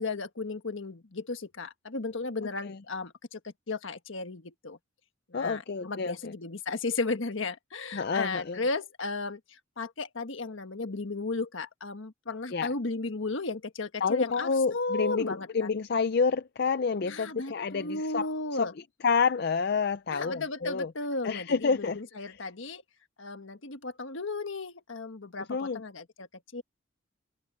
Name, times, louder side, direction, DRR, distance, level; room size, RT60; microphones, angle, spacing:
voice 1, 0.0-4.8 5.3-15.7 17.0-18.7 20.1-22.8 23.2-26.6, left 3 dB, 70° left, 1.4 m, -35 dB
voice 2, 5.3-6.1 7.9-8.6 12.5-12.7 14.0-18.3 18.5-18.7 19.0-20.9 21.2-22.0 22.3-22.4 25.5-25.8, left 5 dB, 50° left, 0.5 m, -28 dB
head